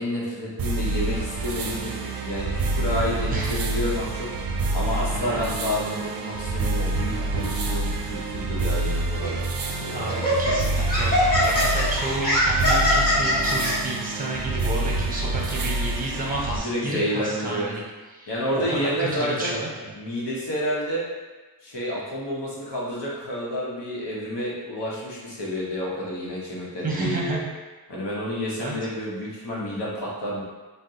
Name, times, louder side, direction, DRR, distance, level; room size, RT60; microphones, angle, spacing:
voice 1, 0.0-4.3 4.7-9.4 9.7-10.6 16.5-17.7 18.3-19.6 19.9-21.0 21.6-27.4 27.9-30.4, equal, 75° left, -5 dB, 1.0 m, -30 dB
sound 1, 0.6-16.6, right 2 dB, 55° right, 0.5 m, -27 dB
voice 2, 3.3-3.6 5.1-5.4 9.8-11.1 11.4-17.8 18.1-19.9 26.8-27.5 28.6-28.7, right 2 dB, 20° right, -3 dB, 0.7 m, -31 dB
Laughter, 9.2-9.4 10.1-13.7, left 1 dB, 20° left, 1.2 m, -22 dB
2.7 x 2.2 x 3.6 m, 1.3 s
wide cardioid pair, 85°, 42 cm